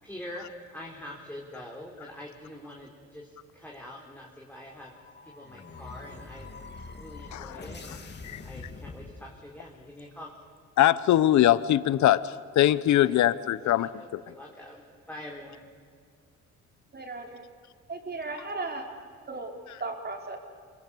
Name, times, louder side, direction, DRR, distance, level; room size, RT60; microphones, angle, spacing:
voice 1, 0.0-4.9 5.2-8.2 8.4-10.4 13.0-13.1 13.6-15.7, left 1 dB, 5° left, -2 dB, 3.9 m, -45 dB
sound 1, 4.7-9.7, left 3 dB, 35° left, 2.7 m, -44 dB
voice 2, 7.3-7.6 8.3-8.4 10.8-13.9, left 13 dB, 70° left, 17 dB, 0.9 m, -22 dB
voice 3, 16.9-17.4 17.9-18.9 19.3-19.5 19.8-20.4, right 3 dB, 35° right, 2 dB, 4.8 m, -36 dB
26.5 x 23.0 x 8.4 m, 2.1 s
cardioid pair, 90°, 30 cm